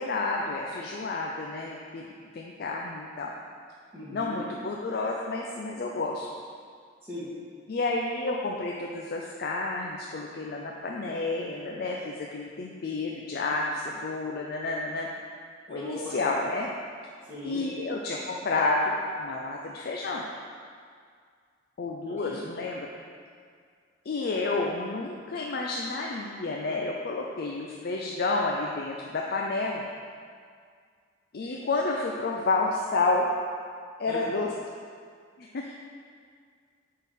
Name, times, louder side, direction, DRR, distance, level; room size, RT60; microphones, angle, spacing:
voice 1, 0.0-3.3 4.1-6.3 7.7-15.1 15.7-16.7 17.4-20.2 21.8-22.9 24.1-29.8 31.3-33.3 34.0-34.5 35.4-35.7, left 3 dB, 55° left, -1 dB, 0.4 m, -30 dB
voice 2, 3.9-4.4 7.0-7.3 15.7-16.1 17.3-17.6 22.1-22.4 34.1-34.3, left 1 dB, 10° right, -11 dB, 1.7 m, -38 dB
8.1 x 3.8 x 4.2 m, 2.1 s
head